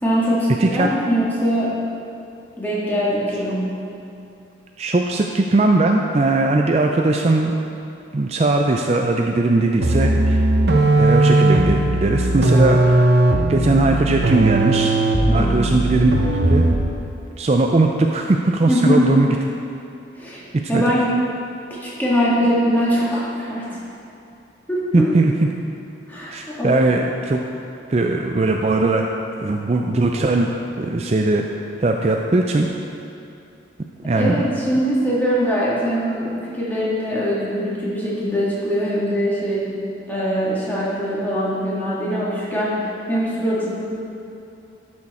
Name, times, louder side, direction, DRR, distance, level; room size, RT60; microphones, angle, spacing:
voice 1, 0.0-1.7 2.6-3.7 15.3-15.6 18.7-19.1 20.1-20.4 20.7-21.0 21.7-23.8 24.7-25.1 26.1-26.8 34.1-39.8 40.1-43.7, equal, 10° left, -8 dB, 1.9 m, -22 dB
voice 2, 4.8-7.5 8.1-10.4 11.0-13.1 13.5-14.9 15.3-16.1 16.5-16.7 17.4-19.3 20.7-20.8 24.9-25.3 26.3-27.4 27.9-29.0 29.4-30.5 30.8-31.5 31.8-32.7 34.0-34.4, right 2 dB, 35° right, 2 dB, 0.4 m, -19 dB
sound 1, 9.8-17.0, right 2 dB, 65° right, 0.8 m, -17 dB
11.5 x 6.4 x 4.2 m, 2.7 s
head